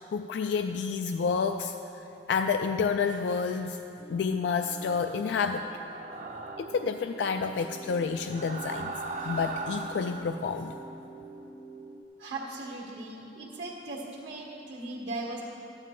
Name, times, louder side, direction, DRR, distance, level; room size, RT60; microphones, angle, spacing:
voice 1, 0.0-3.8 4.1-5.7 6.6-8.9 9.2-10.7, left 5 dB, 75° left, 7 dB, 0.3 m, -29 dB
sound 1, 4.0-12.0, right 3 dB, 5° right, 0.5 m, -47 dB
sound 2, 5.7-6.9 8.1-10.3, right 3 dB, 45° right, 0.6 m, -38 dB
voice 2, 12.2-15.4, right 2 dB, 85° right, -4 dB, 1.6 m, -38 dB
13.0 x 9.6 x 3.7 m, 2.9 s
head